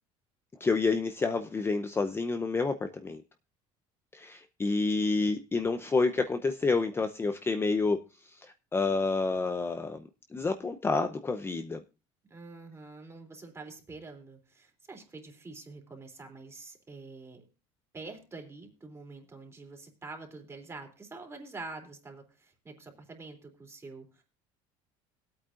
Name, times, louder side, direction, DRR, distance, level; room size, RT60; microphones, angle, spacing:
voice 1, 0.6-3.2 4.1-8.5 8.7-10.0 10.3-11.8, left 3 dB, 20° left, 7 dB, 0.7 m, -29 dB
voice 2, 12.3-17.4 17.9-24.2, right 3 dB, 20° right, 3 dB, 3.3 m, -46 dB
20.0 x 8.8 x 2.5 m, 0.31 s
cardioid pair, 115°, 13 cm